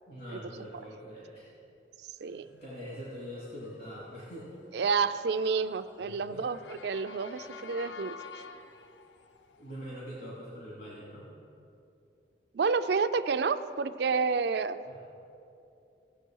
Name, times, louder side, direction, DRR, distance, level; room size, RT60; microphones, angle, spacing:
voice 1, 0.1-1.5 2.3-4.5 6.0-6.4 9.6-11.3 14.9-15.0, equal, 60° left, -7 dB, 2.5 m, -43 dB
voice 2, 2.0-2.5 4.7-8.1 12.5-14.8, right 5 dB, 65° right, 10 dB, 0.4 m, -29 dB
Motor vehicle (road) / Siren, 2.7-10.0, left 5 dB, 85° left, 0.6 m, -50 dB
16.5 x 6.8 x 4.6 m, 2.6 s
head